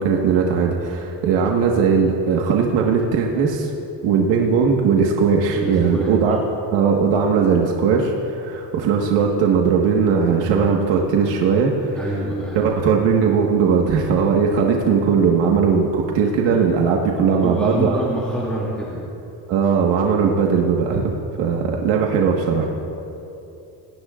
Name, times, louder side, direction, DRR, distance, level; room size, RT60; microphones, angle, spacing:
voice 1, 0.0-3.7 4.0-6.4 6.7-12.0 12.5-18.0 19.5-21.1 21.4-22.7, right 6 dB, 85° right, 0 dB, 1.6 m, -18 dB
voice 2, 5.5-6.1 11.9-12.7 17.3-19.0, equal, 5° left, -8 dB, 2.5 m, -26 dB
28.0 x 19.0 x 2.5 m, 3.0 s
cardioid pair, 155°, 42 cm